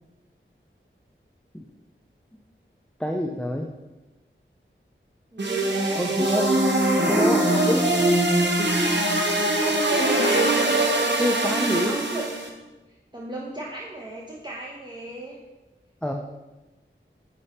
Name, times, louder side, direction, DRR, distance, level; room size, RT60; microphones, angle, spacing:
voice 1, 3.0-3.7 6.0-6.5 7.1-7.9 11.2-11.9 16.0-16.1, left 1 dB, 5° left, 2 dB, 0.5 m, -26 dB
voice 2, 5.3-6.2 8.9-11.1 11.4-12.2 12.9-15.4, right 2 dB, 20° right, -4 dB, 0.9 m, -35 dB
sound 1, 5.4-12.5, right 1 dB, 60° right, 0.9 m, -22 dB
5.2 x 5.0 x 4.3 m, 1.1 s
wide cardioid pair, 55°, 21 cm